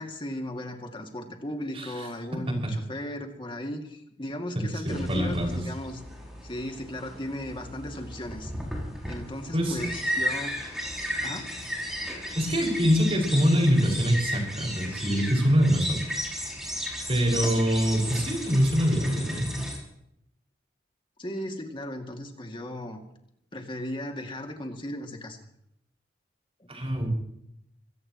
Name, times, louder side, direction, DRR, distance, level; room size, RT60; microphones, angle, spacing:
voice 1, 0.0-6.0 6.4-8.5 9.1-10.6 11.2-11.5 21.2-23.0 23.5-25.5 26.6-26.7, left 1 dB, 30° left, 3 dB, 2.3 m, -36 dB
voice 2, 4.6-5.6 9.5-9.8 12.4-16.0 17.1-19.6 26.7-27.1, equal, 35° right, 0 dB, 5.9 m, -24 dB
sound 1, 4.9-19.8, equal, 5° right, 6.0 m, -35 dB
25.5 x 17.0 x 3.1 m, 0.76 s
head